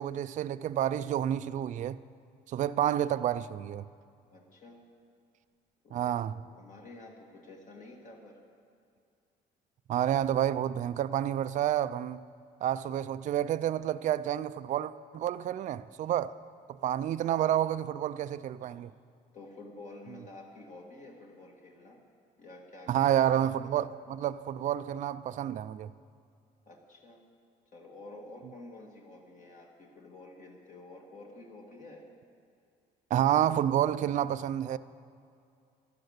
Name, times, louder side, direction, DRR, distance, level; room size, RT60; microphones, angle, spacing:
voice 1, 0.0-2.0 2.5-3.8 5.9-6.4 9.9-12.2 12.6-16.4 16.8-18.9 22.9-25.9 33.1-34.8, right 11 dB, 45° right, 0.4 m, -29 dB
voice 2, 4.3-4.8 5.8-6.2 6.5-8.4 16.1-16.3 18.7-18.9 19.3-22.0 22.4-23.1 23.4-23.5 26.7-27.2 27.7-32.1, left 2 dB, 50° left, 2.0 m, -50 dB
12.0 x 11.5 x 8.0 m
cardioid pair, 110°, 17 cm